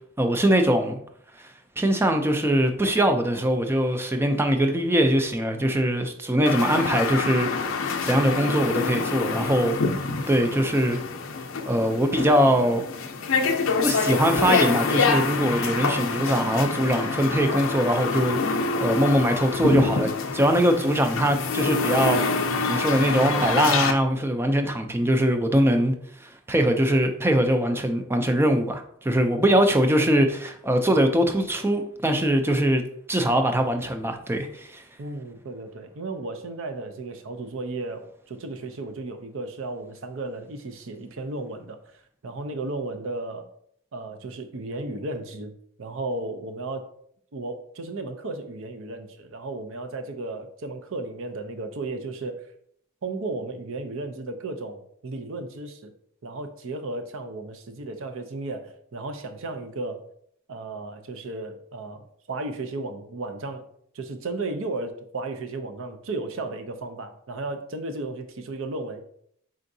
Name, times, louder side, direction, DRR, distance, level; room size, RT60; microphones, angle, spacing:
voice 1, 0.2-1.0 1.4-1.5 1.8-7.7 8.0-9.8 10.3-11.0 11.7-12.8 13.8-25.9 26.2-32.8 33.1-34.8, right 1 dB, 10° right, 6 dB, 0.4 m, -22 dB
sound 1, 6.5-23.9, left 4 dB, 65° left, 0.5 m, -26 dB
voice 2, 35.0-43.5 43.9-45.5 45.8-46.8 47.3-52.5 53.0-55.9 56.2-60.1 60.5-63.7 63.9-69.0, right 2 dB, 65° right, 8 dB, 0.6 m, -34 dB
4.5 x 3.8 x 2.6 m, 0.66 s
head